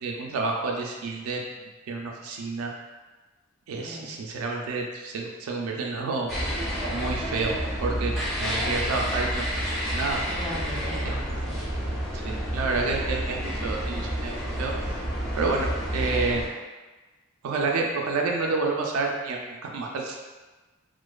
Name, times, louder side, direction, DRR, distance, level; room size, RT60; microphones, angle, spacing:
voice 1, 0.0-1.4 1.9-2.7 3.7-6.3 6.9-9.5 9.9-10.2 11.0-11.2 12.2-14.7 15.4-16.5 17.4-20.2, right 3 dB, 75° right, 0 dB, 0.3 m, -29 dB
voice 2, 3.8-4.2 10.3-11.6, equal, 30° left, -10 dB, 1.0 m, -38 dB
sound 1, 6.3-16.5, equal, ahead, 0.4 m, -29 dB
2.5 x 2.2 x 2.2 m, 1.2 s
head